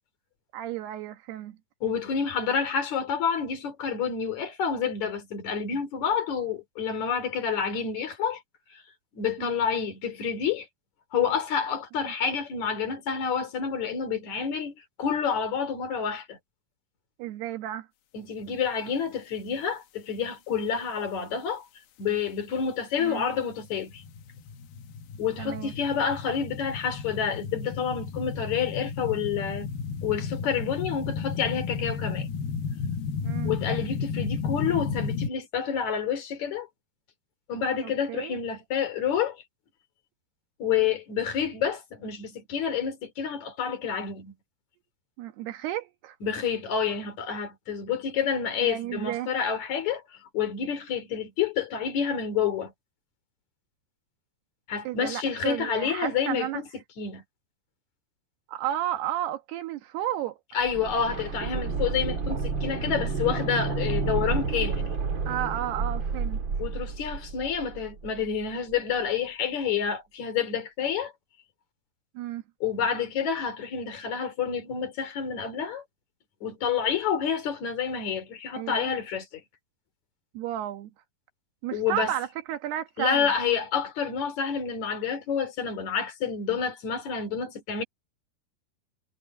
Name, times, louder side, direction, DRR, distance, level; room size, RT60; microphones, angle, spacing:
voice 1, 0.5-1.6 9.4-9.5 17.2-17.9 23.0-23.2 25.4-25.7 33.2-33.6 37.8-38.4 45.2-46.2 48.6-49.3 54.8-56.6 58.5-60.4 65.3-66.4 72.1-72.4 78.5-78.9 80.3-80.9 81.6-83.3, right 12 dB, 80° right, 3.3 m, -32 dB
voice 2, 1.8-8.4 8.7-8.8 9.1-10.7 11.1-14.7 15.0-16.4 18.1-21.7 22.0-24.0 25.2-29.7 30.0-32.3 33.4-36.7 37.5-39.4 40.6-44.3 46.2-52.7 54.7-56.7 57.0-57.2 60.5-64.9 66.6-71.1 72.6-75.8 76.4-79.4 81.7-82.1 83.0-87.8, left 7 dB, 45° left, 4.3 m, -29 dB
sound 1, 23.4-35.3, left 6 dB, 70° left, 3.1 m, -33 dB
sound 2, 60.6-68.4 68.7-68.8, right 4 dB, 35° right, 2.2 m, -30 dB
omnidirectional pair, 4.6 m